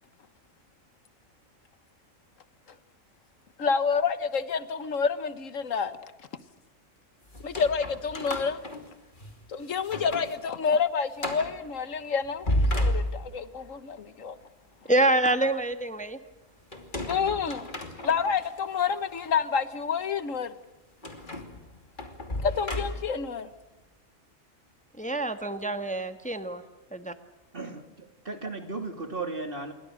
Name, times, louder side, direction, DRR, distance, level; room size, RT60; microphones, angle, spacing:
voice 1, 3.6-6.0 7.4-8.6 9.5-12.5 12.7-14.4 17.1-17.7 18.0-20.5 22.4-23.5, left 6 dB, 80° left, 13 dB, 1.6 m, -28 dB
sound 1, 7.3-9.4 9.8-10.4 10.7-10.8 11.2-11.6 12.2-13.6 16.7-18.5 19.1-19.3 21.0-23.3, left 1 dB, 40° left, 3.0 m, -32 dB
voice 2, 14.9-16.2 25.0-26.6 26.9-27.1, right 2 dB, 5° left, 8 dB, 1.3 m, -26 dB
voice 3, 27.5-29.7, right 3 dB, 45° right, 6 dB, 3.1 m, -36 dB
28.0 x 23.0 x 6.5 m, 1.1 s
omnidirectional pair, 1.3 m